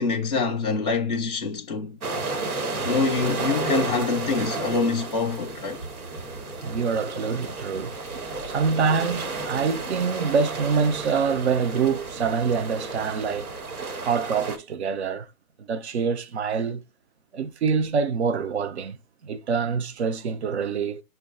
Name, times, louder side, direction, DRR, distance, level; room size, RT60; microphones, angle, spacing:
voice 1, 0.0-2.0 2.8-5.8, left 4 dB, 30° left, 0.4 m, -25 dB
sound 1, 2.0-14.6, right 3 dB, 80° right, 1.2 m, -32 dB
voice 2, 6.6-7.9 8.5-13.5 14.0-15.3 15.7-16.8 17.3-19.0 19.2-21.0, right 5 dB, 50° right, 0.5 m, -25 dB
6.2 x 2.3 x 2.4 m
hypercardioid pair, 145°, 43 cm